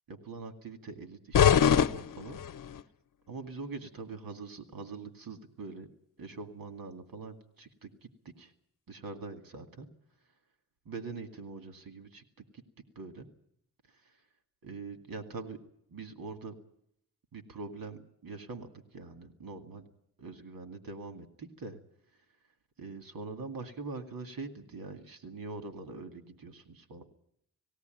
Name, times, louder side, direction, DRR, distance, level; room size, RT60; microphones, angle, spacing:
voice 1, 0.1-2.4 3.3-5.9 6.2-8.5 8.9-9.9 10.9-12.2 12.5-12.6 13.0-13.3 13.9-14.1 14.6-15.6 15.9-16.6 17.3-19.9 20.2-21.8 22.8-27.0, right 3 dB, 85° right, 6 dB, 2.4 m, -43 dB
sound 1, 1.3-2.8, left 8 dB, 70° left, 0.7 m, -24 dB
19.5 x 16.5 x 9.2 m, 0.71 s
wide cardioid pair, 150°, 34 cm